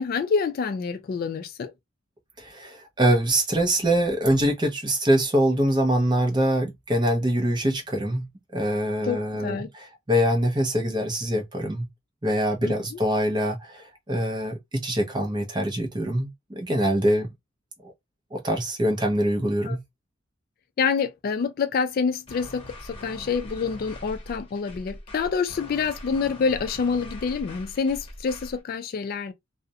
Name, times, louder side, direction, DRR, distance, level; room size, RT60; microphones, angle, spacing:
voice 1, 0.0-1.7 9.0-9.7 12.6-13.0 19.6-19.8 20.8-29.3, left 5 dB, 45° left, 0.3 m, -27 dB
voice 2, 2.4-8.3 8.5-11.9 12.2-17.3 18.3-19.8, equal, 20° right, 0.6 m, -24 dB
sound 1, 22.3-28.6, left 1 dB, 25° left, 1.0 m, -42 dB
2.4 x 2.1 x 2.6 m
head